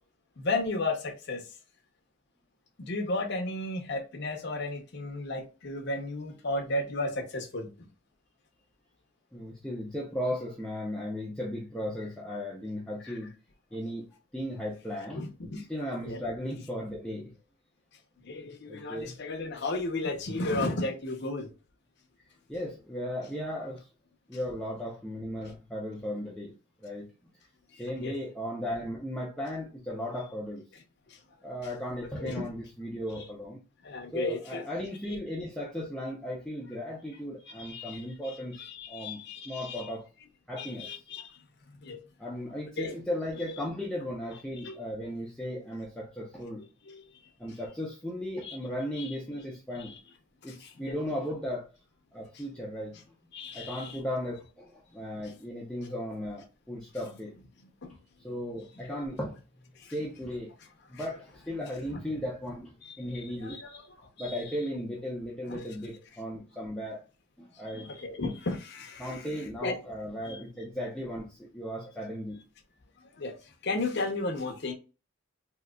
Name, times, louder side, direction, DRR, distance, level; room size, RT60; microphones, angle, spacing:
voice 1, 0.4-1.5 2.8-7.9 13.0-13.1 15.2-15.6 16.0-16.2 18.2-21.5 27.7-28.1 31.1-31.2 32.2-32.4 33.8-34.6 37.6-38.0 38.6-39.9 40.6-41.4 41.8-42.0 42.8-43.0 44.6-44.8 46.9-47.0 48.4-48.6 49.0-49.1 50.4-51.0 53.3-54.0 57.8-57.9 59.8-59.9 60.9-61.0 62.8-63.0 63.4-63.8 64.2-64.4 65.5-65.6 67.8-69.3 69.6-69.8 70.2-70.5 73.1-73.4 73.6-74.7, left 2 dB, 55° left, 0.7 m, -34 dB
voice 2, 9.3-13.3 13.7-14.1 14.3-15.2 15.7-17.3 18.7-19.1 22.5-23.9 24.3-26.5 26.8-27.1 27.7-30.6 31.4-33.6 34.1-40.1 40.5-40.9 42.2-46.6 47.4-50.0 50.4-51.7 52.1-53.0 53.5-57.3 58.2-59.4 59.9-60.5 60.9-63.6 64.2-67.0 67.4-67.9 69.0-72.4, equal, 5° left, 0.6 m, -36 dB
3.7 x 2.8 x 2.2 m
head